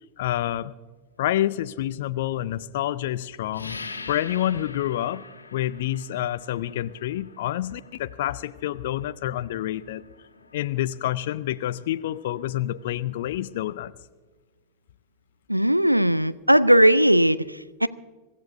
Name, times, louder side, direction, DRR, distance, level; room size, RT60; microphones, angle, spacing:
voice 1, 0.2-0.7 1.2-3.8 4.1-5.2 5.5-10.0 10.5-13.9, left 13 dB, 55° left, 15 dB, 0.4 m, -28 dB
sound 1, 3.5-13.8, left 3 dB, 75° left, 1.4 m, -45 dB
voice 2, 15.5-17.9, right 1 dB, 90° right, 16 dB, 0.4 m, -18 dB
26.0 x 14.0 x 2.6 m, 1.3 s
figure-of-eight pair, 90°, 0 cm